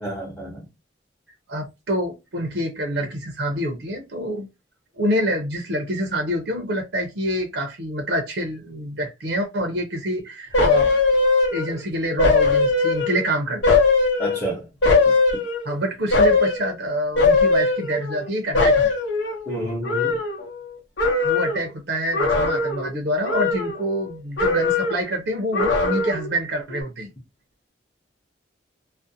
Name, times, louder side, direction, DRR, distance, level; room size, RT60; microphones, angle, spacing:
voice 1, 0.0-0.6 14.2-14.7 19.5-20.2, right 1 dB, 10° left, 0.7 m, -29 dB
voice 2, 1.5-4.5 5.0-10.9 11.5-13.8 15.6-18.9 21.2-27.1, equal, 70° right, 0.6 m, -26 dB
sound 1, 10.5-11.8 12.2-13.3 13.6-15.7 16.1-16.7 17.2-18.3 18.5-20.7 21.0-21.7 22.1-22.9 23.2-24.1 24.4-25.1 25.5-26.3 26.7-26.8, left 3 dB, 85° left, 0.7 m, -20 dB
2.5 x 2.0 x 2.5 m
head